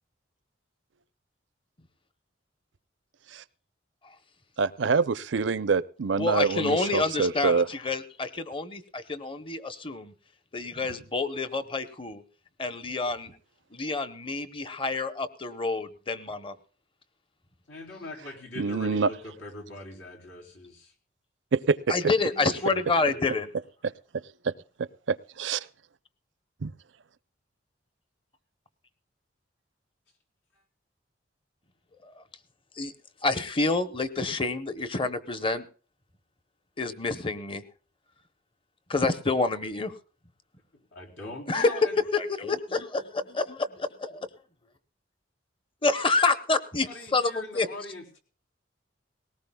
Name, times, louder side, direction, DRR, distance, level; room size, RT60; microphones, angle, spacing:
voice 1, 4.6-7.7 18.6-19.1 21.5-21.8 23.8-24.5 24.8-25.7 26.6-26.7, right 5 dB, 80° right, 16 dB, 0.5 m, -26 dB
voice 2, 6.2-10.1 10.5-12.2 12.6-13.3 13.7-16.5 21.9-23.5 32.0-32.2 32.8-32.9 33.2-35.7 36.8-37.6 38.9-39.9 41.5-41.8 42.1-44.3 45.8-47.7, left 3 dB, 30° left, 11 dB, 0.9 m, -28 dB
voice 3, 17.7-20.9 22.2-23.4 40.7-42.0 46.9-48.2, left 2 dB, 85° left, 0 dB, 3.9 m, -42 dB
20.0 x 18.0 x 2.3 m, 0.40 s
head